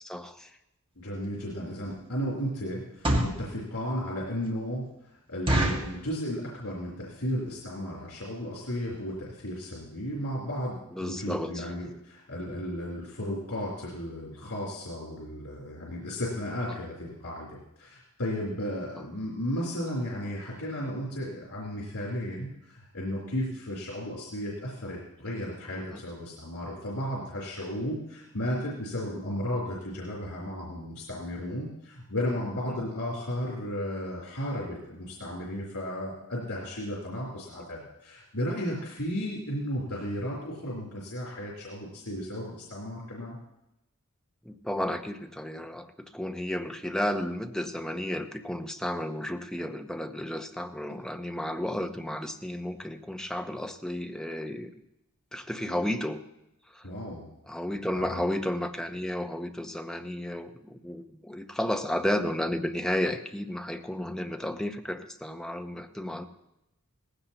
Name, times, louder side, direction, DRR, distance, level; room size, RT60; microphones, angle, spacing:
voice 1, 0.0-0.5 11.0-11.7 25.7-26.0 44.4-54.7 55.3-56.2 56.7-56.8 57.5-66.2, left 1 dB, 5° left, 5 dB, 0.7 m, -32 dB
voice 2, 1.0-43.4 56.8-57.3 57.9-58.2, equal, 90° left, -4 dB, 3.6 m, -34 dB
sound 1, 1.2-1.4 1.9-2.1 2.8-3.4 4.0-4.1 4.4-4.5 4.9-5.0 5.5-6.0 6.6-6.8 7.1-7.2 7.4-7.7 8.2-8.3 8.6-8.7 9.1-9.2 9.4-9.5, right 1 dB, 25° right, 1.8 m, -27 dB
18.0 x 16.0 x 2.9 m, 0.88 s
head